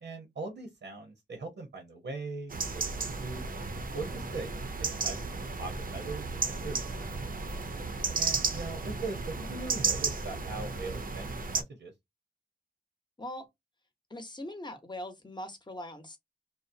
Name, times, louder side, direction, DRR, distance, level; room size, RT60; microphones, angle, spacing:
voice 1, 0.0-2.8 3.2-3.5 3.9-4.5 4.8-6.8 8.2-11.9, right 3 dB, 80° right, 0.8 m, -40 dB
sound 1, 2.5-11.6, right 4 dB, 50° right, 0.5 m, -34 dB
voice 2, 14.1-16.2, left 1 dB, 25° left, 0.7 m, -41 dB
2.7 x 2.0 x 2.5 m
wide cardioid pair, 80°, 19 cm